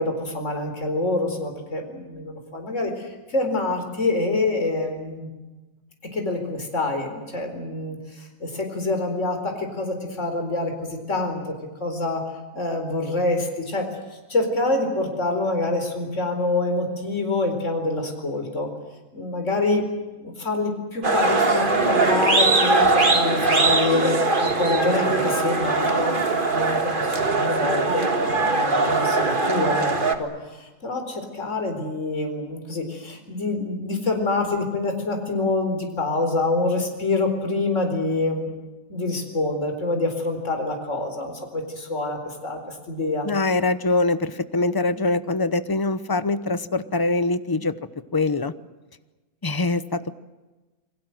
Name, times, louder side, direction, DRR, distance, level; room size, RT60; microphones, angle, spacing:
voice 1, 0.0-5.3 6.1-11.5 11.8-12.2 12.5-13.9 14.3-18.7 19.1-19.8 20.2-26.1 26.5-38.6 38.9-43.3, left 2 dB, 50° left, 4 dB, 4.6 m, -26 dB
sound 1, 21.0-30.1, right 3 dB, 35° right, 2.1 m, -21 dB
voice 2, 43.2-47.7 48.1-48.5 49.4-50.1, left 2 dB, 20° left, 13 dB, 0.7 m, -23 dB
29.0 x 22.0 x 7.8 m, 1.2 s
omnidirectional pair, 1.6 m